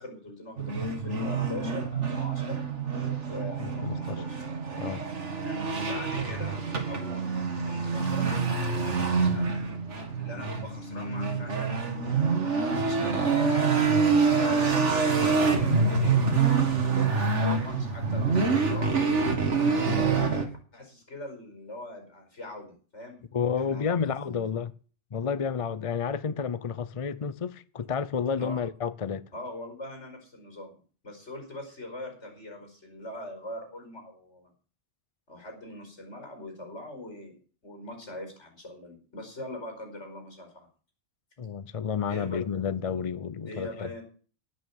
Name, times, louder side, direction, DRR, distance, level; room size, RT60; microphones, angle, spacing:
voice 1, 0.0-2.6 3.3-4.4 5.4-6.6 6.8-7.2 7.6-9.6 10.2-14.5 15.1-19.0 19.9-23.2 23.5-24.4 28.4-28.6 29.3-30.7 31.0-34.5 35.3-37.4 37.6-40.7 42.1-42.4 43.5-44.0, left 1 dB, 80° left, 5.4 m, -42 dB
sound 1, 0.6-20.4, right 4 dB, 85° right, 2.2 m, -26 dB
voice 2, 3.6-4.2 4.8-5.0 10.6-10.7 11.0-11.1 23.3-24.7 25.1-29.2 41.4-43.9, left 6 dB, 35° left, 0.6 m, -31 dB
18.0 x 6.4 x 7.1 m
omnidirectional pair, 1.2 m